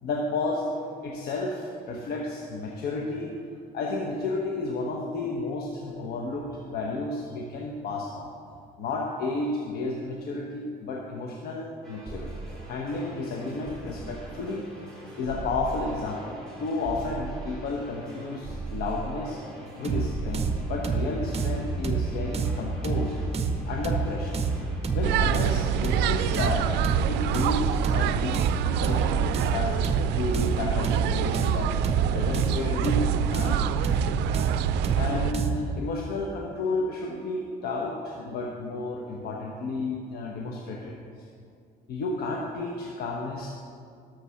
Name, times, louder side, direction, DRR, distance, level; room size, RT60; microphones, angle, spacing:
voice 1, 0.0-0.7 1.0-3.3 3.7-8.3 8.8-12.3 12.6-14.6 15.2-19.4 19.8-23.1 23.7-24.4 24.9-29.8 30.1-31.7 32.1-33.0 33.3-33.7 34.9-40.9 41.9-43.5, left 3 dB, 70° left, 0 dB, 1.2 m, -32 dB
sound 1, 11.8-30.3, right 2 dB, 5° left, 3.1 m, -40 dB
sound 2, 19.8-35.7, right 5 dB, 35° right, 0.9 m, -28 dB
sound 3, 25.0-35.3, right 10 dB, 85° right, 0.4 m, -27 dB
12.5 x 6.7 x 5.7 m, 2.3 s
cardioid pair, 110°, 17 cm